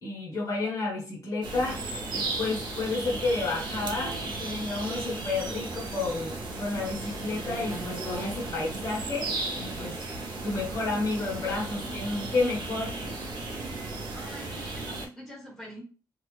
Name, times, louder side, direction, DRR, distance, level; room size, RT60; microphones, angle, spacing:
voice 1, 0.0-1.8 2.1-10.0 10.4-13.1, left 3 dB, 45° left, -3 dB, 1.2 m, -31 dB
sound 1, 1.4-15.1, right 2 dB, 90° right, 0.8 m, -35 dB
voice 2, 14.1-15.8, equal, 5° left, -4 dB, 1.4 m, -44 dB
2.7 x 2.3 x 3.2 m, 0.36 s
wide cardioid pair, 125°, 8 cm